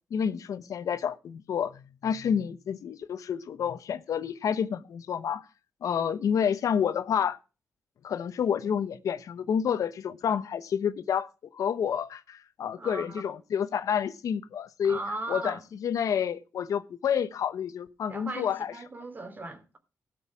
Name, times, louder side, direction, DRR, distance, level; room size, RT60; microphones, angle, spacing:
voice 1, 0.1-5.5 5.8-7.4 8.0-11.3 11.5-15.0 15.3-18.7, left 8 dB, 85° left, 0.9 m, -29 dB
voice 2, 12.8-13.3 14.8-15.6 18.1-19.8, right 2 dB, 35° right, 2.9 m, -38 dB
16.5 x 6.2 x 6.1 m
wide cardioid pair, 105°, 6 cm